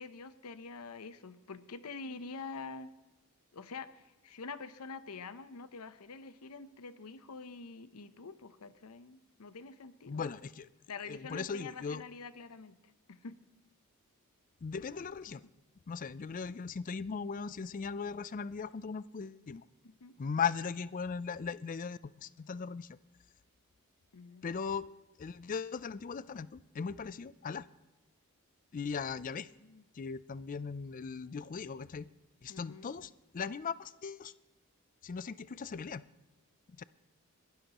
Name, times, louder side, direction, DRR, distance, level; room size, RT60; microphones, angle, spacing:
voice 1, 0.0-2.9 3.5-10.2 10.9-12.8 13.1-13.4 19.8-20.1 24.1-24.5 29.6-29.8 32.5-32.9, left 4 dB, 85° left, 13 dB, 0.7 m, -46 dB
voice 2, 10.1-10.7 11.1-12.0 14.6-15.4 15.9-19.6 20.2-23.0 24.4-24.9 25.2-27.7 28.7-29.5 29.9-32.1 32.4-34.3 35.0-36.0 36.7-36.8, left 5 dB, 35° left, 18 dB, 0.4 m, -38 dB
21.5 x 12.5 x 3.0 m, 1.1 s
head